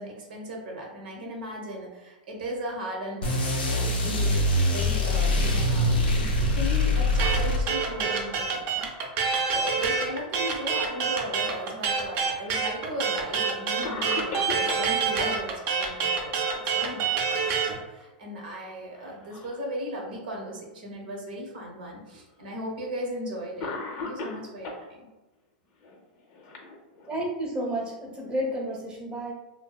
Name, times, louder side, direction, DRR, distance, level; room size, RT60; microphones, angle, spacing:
voice 1, 0.0-9.2 9.5-25.1, equal, 80° right, -1 dB, 0.7 m, -37 dB
sound 1, 3.2-8.0, left 1 dB, 90° left, 0.6 m, -24 dB
sound 2, 7.2-17.7, right 5 dB, 45° right, 0.5 m, -26 dB
Cough, 12.0-12.9 13.4-13.5 13.8-15.4 17.2-17.7 18.0-18.1 18.9-19.6 20.4-20.5 21.6-21.7 22.8-23.0 23.6-24.9 25.8-27.3, left 3 dB, 45° left, 0.5 m, -37 dB
voice 2, 27.1-29.3, right 1 dB, 20° right, -3 dB, 0.8 m, -31 dB
2.6 x 2.2 x 2.3 m, 1.1 s
hypercardioid pair, 120°, 5 cm